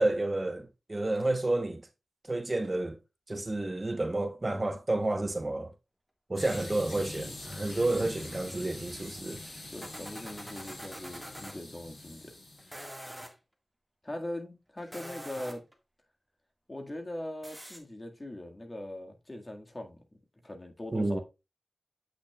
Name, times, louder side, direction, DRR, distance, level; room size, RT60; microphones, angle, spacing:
voice 1, 0.0-1.8 2.3-3.0 3.3-5.7 6.3-9.4 20.9-21.2, right 2 dB, 35° right, 1.0 m, -30 dB
sound 1, 6.4-12.8, left 2 dB, 80° left, 3.8 m, -44 dB
sound 2, 7.4-11.6 12.6-13.3 14.8-15.7 17.4-17.8, equal, 5° right, 1.7 m, -46 dB
voice 2, 9.7-12.3 14.0-15.6 16.7-20.0 20.4-21.2, left 1 dB, 35° left, 1.8 m, -41 dB
8.2 x 6.3 x 2.3 m
cardioid pair, 45°, 0 cm